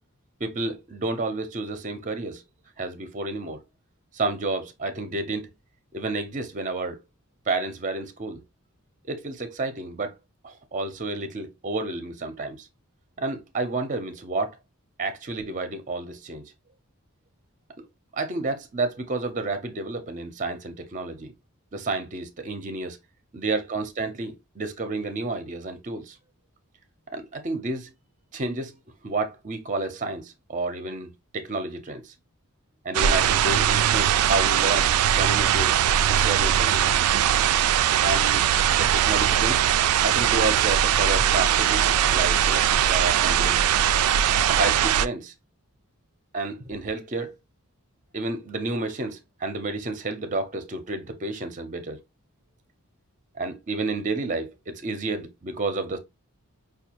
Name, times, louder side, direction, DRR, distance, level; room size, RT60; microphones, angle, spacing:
voice 1, 0.4-2.4 2.8-3.6 4.1-5.5 5.9-7.0 7.5-8.4 9.1-10.1 10.4-12.7 13.2-14.6 15.0-16.5 17.8-17.9 18.1-21.3 21.7-23.0 23.3-26.2 27.1-27.9 28.3-28.8 29.0-32.1 32.8-35.8 36.1-37.0 38.0-38.5 38.7-39.7 40.0-43.6 44.5-45.3 46.3-47.4 48.1-52.0 53.3-56.0, right 3 dB, 35° right, 0.6 m, -30 dB
sound 1, 32.9-45.1, right 10 dB, 80° right, 0.3 m, -21 dB
5.3 x 2.3 x 2.8 m
head